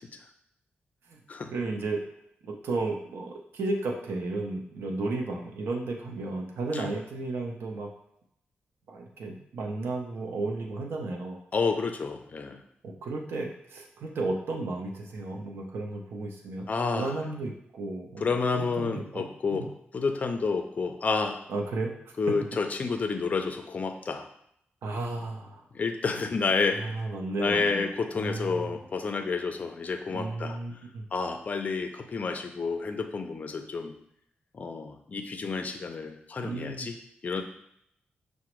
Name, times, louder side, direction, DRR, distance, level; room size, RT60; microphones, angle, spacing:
voice 1, 1.5-2.0 2.4-7.9 8.9-11.4 12.8-16.7 17.0-19.2 19.5-19.7 21.5-22.2 24.8-25.7 26.1-26.2 26.7-28.8 30.1-31.0 36.4-36.9, right 2 dB, 80° right, 1 dB, 0.6 m, -34 dB
voice 2, 11.5-12.6 16.7-17.1 18.2-19.7 19.9-21.4 22.2-24.3 25.7-27.0 27.4-30.6 31.1-33.9 34.5-36.9 37.2-37.4, left 4 dB, 40° left, 6 dB, 0.4 m, -30 dB
5.8 x 2.1 x 3.0 m, 0.73 s
wide cardioid pair, 120°, 4 cm